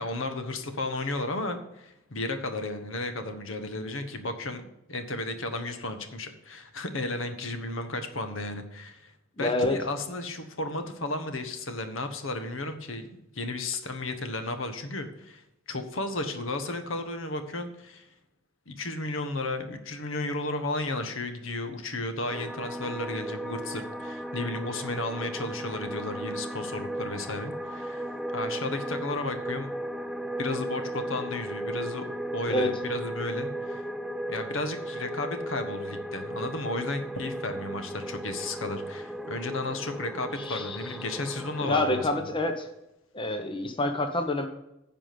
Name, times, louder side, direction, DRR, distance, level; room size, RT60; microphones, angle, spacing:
voice 1, 0.0-9.1 9.4-15.4 15.7-18.1 18.7-29.8 30.4-33.8 34.3-42.3, left 2 dB, 70° left, 8 dB, 1.2 m, -34 dB
voice 2, 9.4-9.8 32.5-32.7 40.4-41.0 41.6-42.7 43.1-44.5, left 2 dB, 25° left, 6 dB, 0.7 m, -27 dB
sound 1, 22.3-42.0, right 1 dB, ahead, 0.4 m, -36 dB
10.0 x 5.0 x 7.7 m, 0.87 s
head